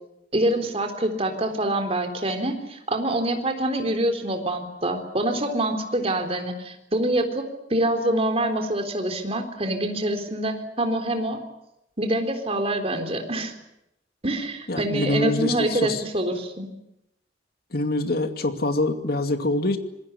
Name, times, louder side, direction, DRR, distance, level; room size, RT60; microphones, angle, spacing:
voice 1, 0.3-11.4 12.0-13.5 14.2-16.7, right 1 dB, 35° right, 5 dB, 3.8 m, -25 dB
voice 2, 14.7-16.0 17.7-19.8, left 1 dB, 55° left, 7 dB, 2.4 m, -25 dB
26.5 x 21.0 x 8.4 m, 0.84 s
head